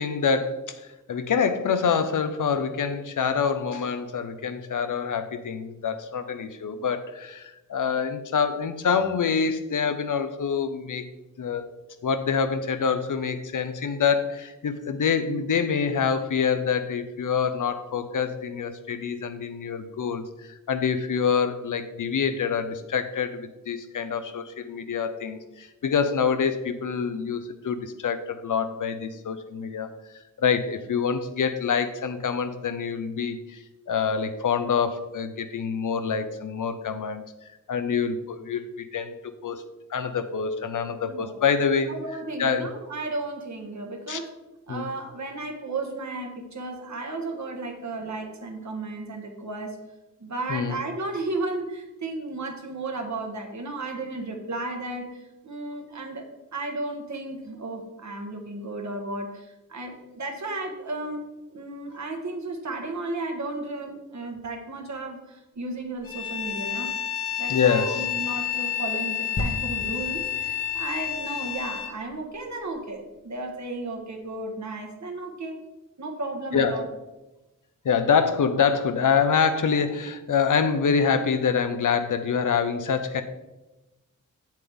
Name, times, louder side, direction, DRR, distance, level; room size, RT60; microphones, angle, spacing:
voice 1, 0.0-11.0 11.4-11.7 12.0-29.9 30.4-37.2 37.7-39.2 39.4-39.6 39.9-41.9 42.4-42.7 44.1-44.2 44.7-44.9 50.5-50.8 67.5-68.1 76.5-76.8 77.8-83.2, left 6 dB, 70° left, 9 dB, 0.8 m, -26 dB
voice 2, 41.9-44.3 44.7-49.8 50.2-56.3 56.5-66.9 67.4-75.6 76.0-76.9, right 2 dB, 60° right, 3 dB, 1.5 m, -34 dB
Bowed string instrument, 66.0-72.0, left 10 dB, 90° left, 2.9 m, -30 dB
sound 1, 69.4-73.0 73.6-73.7, left 1 dB, 45° left, 1.3 m, -36 dB
7.7 x 7.4 x 3.6 m, 1.0 s
cardioid pair, 60°, 32 cm